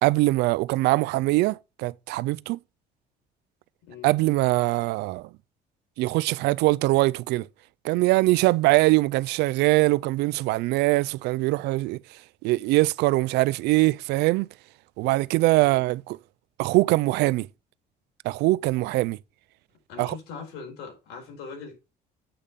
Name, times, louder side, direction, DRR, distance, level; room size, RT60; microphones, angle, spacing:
voice 1, 0.0-2.6 4.0-5.3 6.0-7.5 7.8-12.0 12.4-14.5 15.0-16.0 16.6-17.5 18.2-19.2 20.0-20.1, right 20 dB, 90° right, 0.4 m, -22 dB
voice 2, 3.8-4.1 15.6-15.8 19.9-21.8, left 5 dB, 85° left, 4.7 m, -41 dB
8.7 x 5.2 x 7.1 m
cardioid pair, 110°, 17 cm